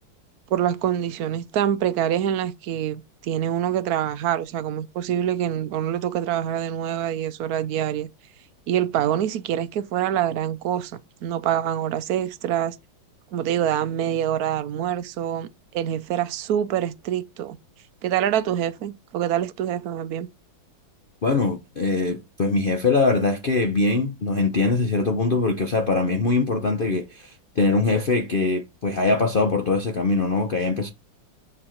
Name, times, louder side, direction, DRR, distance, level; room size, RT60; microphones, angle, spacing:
voice 1, 0.5-8.1 8.7-12.8 13.3-15.5 15.7-17.6 18.0-20.3, right 10 dB, 65° right, 0.9 m, -25 dB
voice 2, 21.2-30.9, left 3 dB, 90° left, 0.4 m, -22 dB
7.0 x 4.7 x 4.4 m
omnidirectional pair, 2.2 m